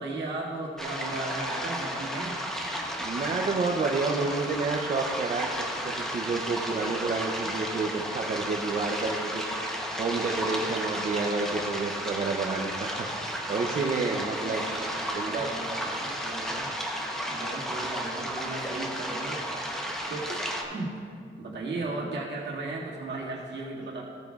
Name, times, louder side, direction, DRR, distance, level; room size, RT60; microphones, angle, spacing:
voice 1, 0.0-2.4 14.7-16.7 17.3-19.4 20.1-21.0 21.4-24.0, right 2 dB, 60° right, -4 dB, 2.0 m, -36 dB
sound 1, 0.8-20.6, equal, ahead, 0.8 m, -33 dB
voice 2, 3.0-13.1 13.5-14.7 15.1-15.8, right 4 dB, 35° right, 0 dB, 0.6 m, -30 dB
15.5 x 8.9 x 2.4 m, 2.3 s
wide cardioid pair, 175°, 21 cm